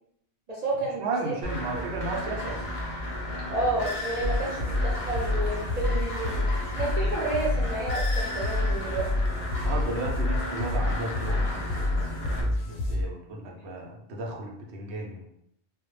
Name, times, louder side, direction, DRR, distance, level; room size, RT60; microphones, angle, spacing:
voice 1, 0.5-1.3 3.5-9.1, right 2 dB, 50° right, -6 dB, 0.5 m, -31 dB
voice 2, 1.0-2.7 9.6-15.2, right 2 dB, 70° right, 0 dB, 0.8 m, -34 dB
sound 1, 1.4-12.4, left 1 dB, 50° left, 0.6 m, -34 dB
sound 2, 4.2-13.0, left 2 dB, 90° left, 0.9 m, -29 dB
2.2 x 2.0 x 3.0 m, 0.74 s
omnidirectional pair, 1.2 m